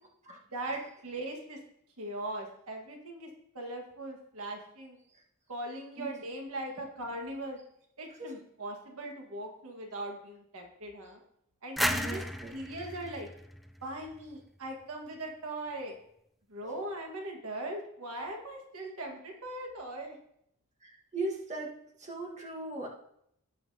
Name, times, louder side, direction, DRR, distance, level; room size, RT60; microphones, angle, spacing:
voice 1, 0.5-1.6 2.0-3.3 3.5-5.0 5.5-7.6 8.0-11.2 11.6-12.2 12.5-13.3 13.8-16.0 16.5-20.2, right 1 dB, 70° right, 1 dB, 1.5 m, -40 dB
sound 1, 11.8-14.5, equal, ahead, 0.4 m, -34 dB
voice 2, 11.9-12.5 20.8-21.7 22.0-22.9, right 2 dB, 35° right, -2 dB, 1.5 m, -38 dB
17.5 x 5.9 x 2.8 m, 0.74 s
head